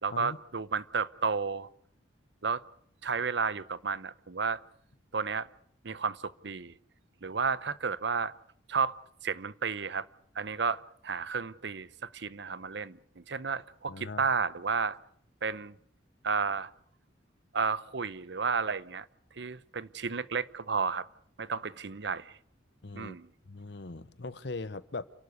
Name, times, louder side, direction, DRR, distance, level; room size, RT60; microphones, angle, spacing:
voice 1, 0.0-1.7 2.4-2.6 3.0-4.6 5.1-5.5 5.8-6.7 7.2-8.3 8.7-9.0 9.2-10.1 10.4-15.0 15.4-15.7 16.2-16.7 17.5-19.1 19.4-21.0 21.4-22.3 22.9-23.3, right 5 dB, 65° right, 0.8 m, -32 dB
voice 2, 13.9-14.2 22.8-23.2 23.5-25.0, left 3 dB, 60° left, 1.0 m, -40 dB
29.5 x 12.0 x 8.2 m
head